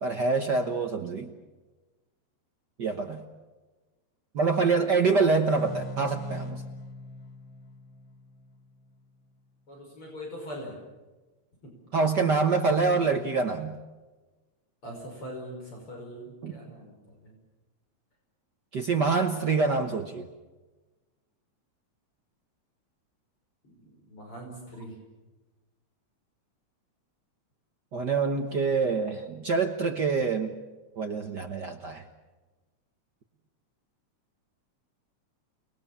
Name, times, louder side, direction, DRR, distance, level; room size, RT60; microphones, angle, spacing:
voice 1, 0.0-1.3 2.8-3.2 4.3-6.6 11.9-13.8 16.4-16.6 18.7-20.3 27.9-30.5 31.0-32.0, right 4 dB, 50° right, 5 dB, 1.4 m, -26 dB
sound 1, 5.5-8.9, equal, 85° left, 4.2 m, -41 dB
voice 2, 9.7-10.8 14.8-17.3 23.6-25.0, equal, 45° left, 0 dB, 6.2 m, -42 dB
30.0 x 20.5 x 7.3 m, 1.2 s
omnidirectional pair, 3.3 m